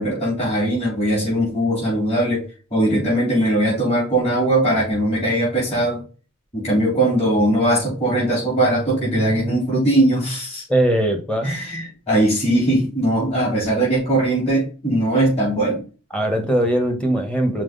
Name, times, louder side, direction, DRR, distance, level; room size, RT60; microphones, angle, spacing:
voice 1, 0.0-2.4 2.7-6.0 6.5-10.6 11.4-15.8, right 1 dB, 30° left, -9 dB, 4.0 m, -20 dB
voice 2, 10.7-11.6 16.1-17.6, right 1 dB, 5° left, 3 dB, 1.2 m, -20 dB
6.0 x 4.7 x 4.0 m, 0.35 s
head